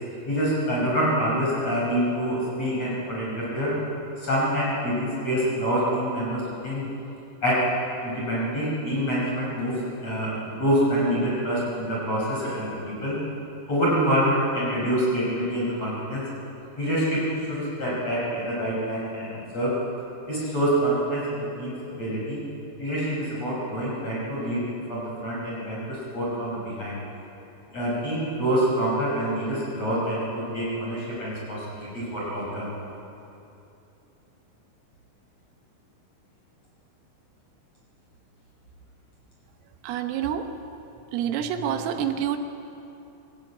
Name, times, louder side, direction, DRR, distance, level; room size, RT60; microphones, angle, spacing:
voice 1, 0.3-3.7 4.2-6.8 7.4-7.6 8.0-13.2 13.7-16.2 16.8-19.7 20.3-22.4 22.8-24.6 24.9-27.0 27.7-32.7, equal, 30° left, -5 dB, 6.0 m, -26 dB
voice 2, 39.8-40.8 41.1-42.4, right 9 dB, 80° right, 6 dB, 3.7 m, -28 dB
24.5 x 18.0 x 8.7 m, 2.8 s
omnidirectional pair, 6.0 m